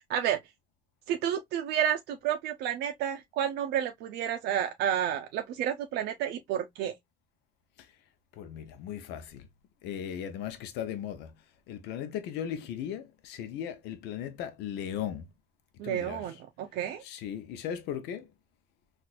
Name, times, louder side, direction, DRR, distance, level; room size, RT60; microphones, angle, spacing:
voice 1, 1.1-6.9 15.8-17.0, right 10 dB, 85° right, 0.5 m, -30 dB
voice 2, 8.4-9.5 9.8-11.3 11.7-15.3 15.8-16.2 17.0-18.3, left 9 dB, 90° left, 0.6 m, -37 dB
4.2 x 2.5 x 2.3 m
cardioid pair, 110°, 17 cm